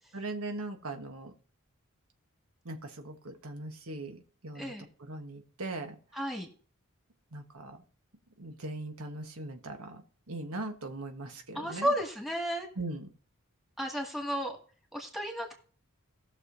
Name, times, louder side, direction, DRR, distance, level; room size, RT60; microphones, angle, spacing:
voice 1, 0.1-1.3 2.6-4.7 5.0-6.0 7.3-7.8 8.4-11.9 12.8-13.1, right 2 dB, 85° right, 5 dB, 1.3 m, -40 dB
voice 2, 6.1-6.5 11.5-12.7 13.8-14.6 14.9-15.6, equal, ahead, -1 dB, 1.9 m, -33 dB
18.5 x 6.5 x 2.6 m, 0.43 s
head